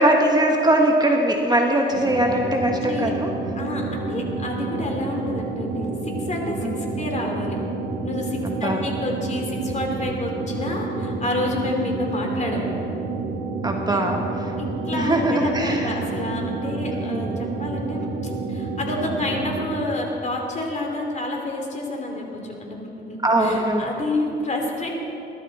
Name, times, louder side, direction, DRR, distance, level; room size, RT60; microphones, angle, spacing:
voice 1, 0.0-3.3 6.6-6.8 8.6-8.8 13.6-14.5 14.9-15.9 16.9-17.4 23.2-23.9, right 1 dB, 20° right, 2 dB, 1.4 m, -21 dB
sound 1, 1.9-19.7, right 3 dB, 65° right, 1.8 m, -29 dB
voice 2, 2.8-3.1 3.6-7.6 8.0-12.6 13.9-14.0 14.6-24.9, left 2 dB, 35° left, 1 dB, 3.1 m, -29 dB
20.5 x 12.0 x 4.2 m, 2.9 s
cardioid pair, 90°, 20 cm